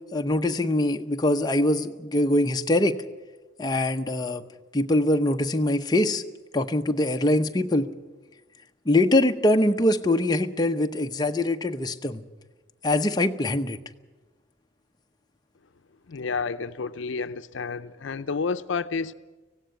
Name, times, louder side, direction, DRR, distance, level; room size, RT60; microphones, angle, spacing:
voice 1, 0.1-3.0 3.6-4.4 4.7-6.2 6.5-7.9 8.9-12.2 12.8-13.8, left 1 dB, 20° left, 0.7 m, -23 dB
voice 2, 16.1-19.1, left 4 dB, 75° left, 0.6 m, -30 dB
18.0 x 16.0 x 9.4 m
head